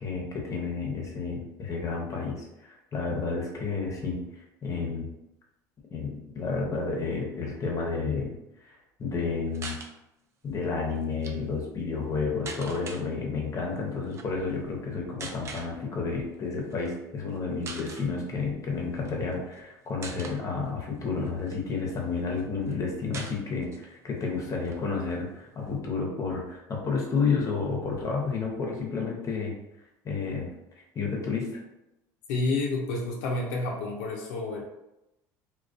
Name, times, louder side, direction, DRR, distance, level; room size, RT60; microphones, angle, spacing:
voice 1, 0.0-5.1 5.9-8.4 8.6-9.8 10.4-29.5 30.0-30.5 30.9-31.5, left 4 dB, 35° left, -1 dB, 0.7 m, -31 dB
sound 1, 9.5-9.9 11.0-11.3 12.5-13.0 14.1-14.3 15.2-15.7 16.7-16.9 17.3-17.4 17.6-18.1 19.0-19.6 20.0-20.4 21.0-22.0 22.4-22.5 22.7-22.8 23.1-23.9 24.2-24.3 24.6-25.7, right 4 dB, 30° right, 0.4 m, -41 dB
voice 2, 32.3-34.6, left 2 dB, 85° left, -1 dB, 0.4 m, -29 dB
2.3 x 2.2 x 2.4 m, 0.91 s
supercardioid pair, 90°, 9 cm